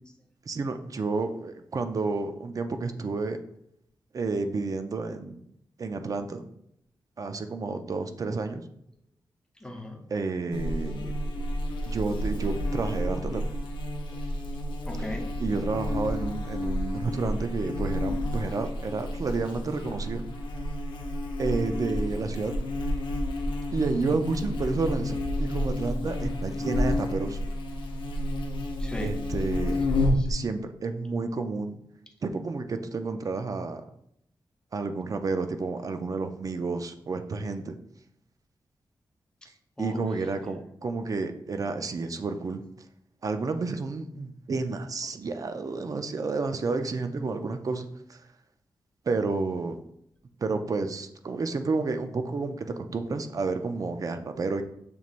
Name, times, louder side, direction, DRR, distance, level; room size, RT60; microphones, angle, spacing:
voice 1, 0.5-3.4 4.1-5.4 5.8-6.4 7.2-8.6 10.1-11.1 11.9-13.4 15.4-20.2 21.4-22.5 23.7-27.4 29.0-29.8 30.3-31.8 32.2-33.8 34.7-37.8 39.8-42.6 43.2-48.2 49.1-49.8 50.4-54.6, right 3 dB, 45° right, 8 dB, 0.5 m, -30 dB
voice 2, 9.6-10.0 14.9-15.3 28.8-29.2 29.9-30.3 39.8-40.0 40.4-40.5, left 1 dB, 10° left, 2 dB, 0.7 m, -38 dB
Buzz, 10.5-30.3, left 1 dB, 80° left, 0.6 m, -30 dB
6.8 x 3.1 x 2.5 m, 0.74 s
wide cardioid pair, 90°, 8 cm